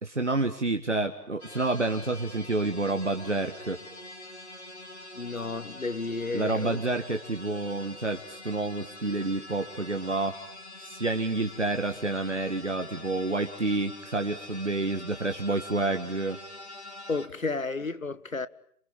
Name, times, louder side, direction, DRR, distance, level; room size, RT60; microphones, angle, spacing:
voice 1, 0.0-3.8 6.3-10.4 10.8-16.4, right 2 dB, 50° right, 1.8 m, -29 dB
sound 1, 1.4-17.3, left 1 dB, 45° left, 3.2 m, -45 dB
voice 2, 5.2-6.8 17.1-18.5, left 3 dB, 65° left, 1.5 m, -32 dB
28.0 x 24.0 x 8.8 m
figure-of-eight pair, 175°, 44 cm